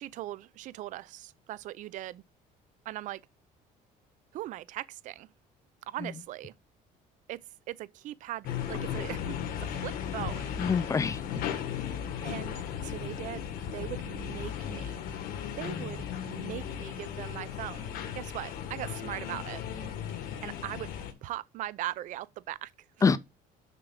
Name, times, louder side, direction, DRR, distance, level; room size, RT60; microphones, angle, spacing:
voice 1, 0.0-2.2 2.9-3.2 4.3-5.3 5.9-6.5 7.3-7.4 7.7-9.4 9.8-10.5 12.2-15.0 15.6-17.9 18.1-19.6 20.4-20.9 21.2-22.7, right 15 dB, 55° right, 0.4 m, -39 dB
sound 1, 8.4-21.1, left 9 dB, 65° left, 1.4 m, -36 dB
voice 2, 10.6-11.4 15.6-16.0 23.0-23.2, left 5 dB, 20° left, 0.5 m, -27 dB
6.6 x 6.0 x 3.7 m
cardioid pair, 145°, 16 cm